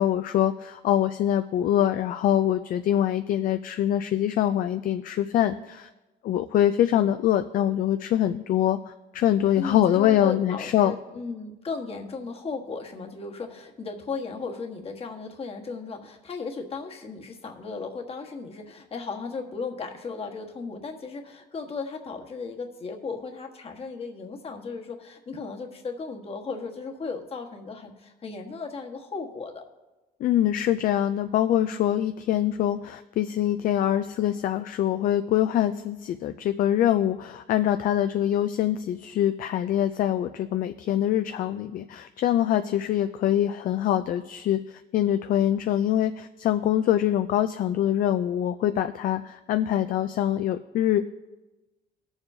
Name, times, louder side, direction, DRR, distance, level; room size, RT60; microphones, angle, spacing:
voice 1, 0.0-5.9 6.2-10.9 30.2-51.1, left 11 dB, 55° left, 9 dB, 0.4 m, -24 dB
voice 2, 9.6-29.6, left 4 dB, 35° left, 3 dB, 1.3 m, -36 dB
20.0 x 7.1 x 2.7 m, 1.1 s
cardioid pair, 110°, 17 cm